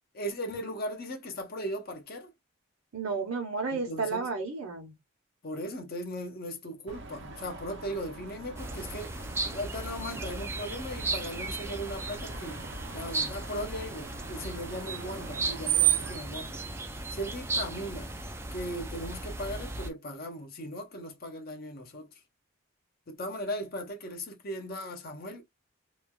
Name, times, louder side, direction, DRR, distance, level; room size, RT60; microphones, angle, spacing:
voice 1, 0.1-2.3 3.7-4.3 5.4-12.6 12.9-16.6 17.1-18.1 18.5-22.1 23.1-25.4, equal, 45° left, 0.7 m, -38 dB
voice 2, 2.9-4.9, right 4 dB, 80° right, 0.9 m, -32 dB
Screech, 6.9-16.2, right 11 dB, 55° right, 0.6 m, -35 dB
sound 1, 8.5-19.9, right 2 dB, 10° right, 0.3 m, -36 dB
3.1 x 2.3 x 2.2 m
head